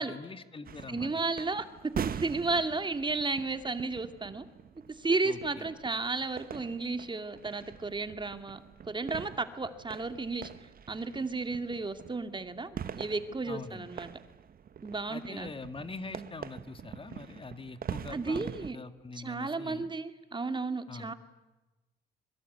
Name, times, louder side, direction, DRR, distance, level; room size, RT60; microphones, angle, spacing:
voice 1, 0.0-1.1 5.2-5.7 13.5-13.9 15.1-19.9 20.9-21.1, left 3 dB, 30° left, 10 dB, 1.9 m, -44 dB
sound 1, 0.7-18.7, right 8 dB, 50° right, 1.4 m, -44 dB
voice 2, 0.9-4.4 4.9-10.5 10.9-14.1 14.8-15.5 16.2-16.3 18.1-18.8 19.1-21.1, right 3 dB, 25° right, 9 dB, 2.5 m, -33 dB
25.0 x 23.0 x 9.4 m, 1.1 s
supercardioid pair, 75°, 19 cm